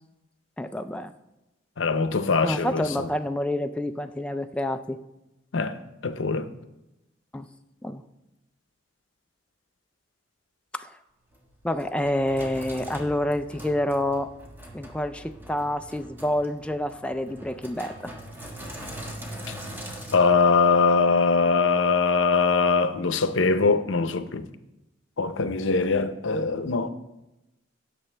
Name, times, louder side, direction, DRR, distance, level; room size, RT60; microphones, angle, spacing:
voice 1, 0.6-1.1 2.4-5.0 7.3-7.5 7.8-8.0 10.7-10.9 11.6-14.3 14.7-18.1, left 1 dB, 5° left, 0.3 m, -28 dB
voice 2, 1.8-2.8 5.5-5.8 6.0-6.5 20.1-24.4 25.2-26.9, left 4 dB, 85° left, 0.7 m, -22 dB
Sink (filling or washing), 11.3-20.2, right 1 dB, 10° right, 1.5 m, -41 dB
17.0 x 6.7 x 3.3 m
head